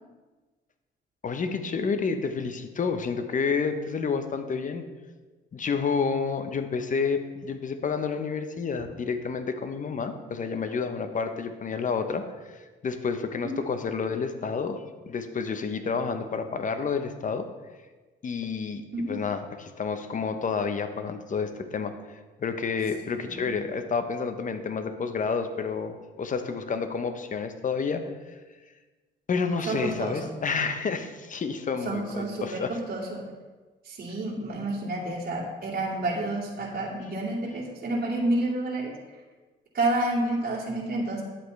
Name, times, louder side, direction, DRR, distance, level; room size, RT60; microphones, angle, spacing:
voice 1, 1.2-4.8 5.5-17.5 18.2-21.9 22.4-28.4 29.3-32.8, left 5 dB, 40° left, 8 dB, 0.9 m, -30 dB
voice 2, 23.2-23.5 29.7-30.3 31.8-33.3 33.8-38.9 39.7-41.2, right 2 dB, 50° right, -5 dB, 2.4 m, -29 dB
10.5 x 8.1 x 3.3 m, 1.3 s
cardioid pair, 90°, 20 cm